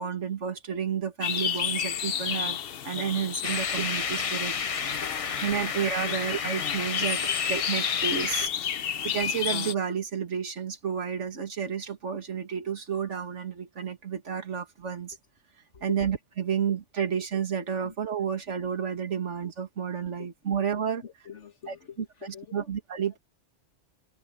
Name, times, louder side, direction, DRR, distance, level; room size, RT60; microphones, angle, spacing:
voice 1, 0.0-2.6 2.8-4.5 5.4-7.2 7.5-8.5 9.0-15.2 15.8-21.0 21.7-23.2, right 7 dB, 85° right, 2.1 m, -31 dB
sound 1, 1.2-9.7, left 8 dB, 60° left, 0.9 m, -32 dB
sound 2, 3.4-8.5, left 6 dB, 40° left, 0.6 m, -31 dB
voice 2, 5.0-5.4 6.0-6.1 6.9-7.1 8.4-9.1 15.7-16.0 17.8-17.9 20.2-22.7 23.0-23.2, left 7 dB, 80° left, 1.9 m, -46 dB
omnidirectional pair, 1.2 m